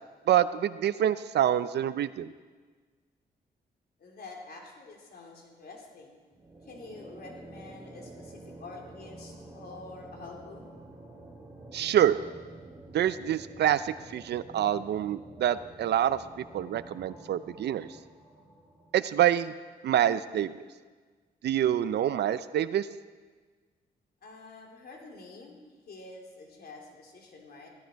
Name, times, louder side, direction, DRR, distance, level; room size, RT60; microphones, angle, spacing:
voice 1, 0.3-2.3 11.7-12.2 12.9-17.9 18.9-19.5 19.8-20.6 21.4-22.9, right 11 dB, 75° right, 14 dB, 0.6 m, -26 dB
voice 2, 4.0-6.2 6.6-10.7 24.2-27.7, left 3 dB, 65° left, 0 dB, 3.6 m, -47 dB
sound 1, 6.3-19.5, right 2 dB, 10° right, 4.9 m, -49 dB
17.0 x 17.0 x 4.6 m, 1.4 s
cardioid pair, 70°, 18 cm